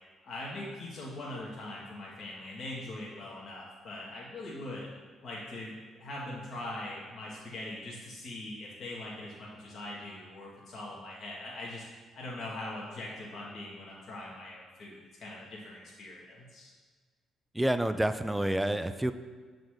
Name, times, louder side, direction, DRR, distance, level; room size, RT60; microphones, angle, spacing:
voice 1, 0.2-4.9 5.2-11.8 12.1-16.7, left 1 dB, 55° left, -5 dB, 1.3 m, -42 dB
voice 2, 17.5-19.1, right 1 dB, 10° right, 10 dB, 0.4 m, -28 dB
7.1 x 4.0 x 4.8 m, 1.4 s
hypercardioid pair, 50°, 0 cm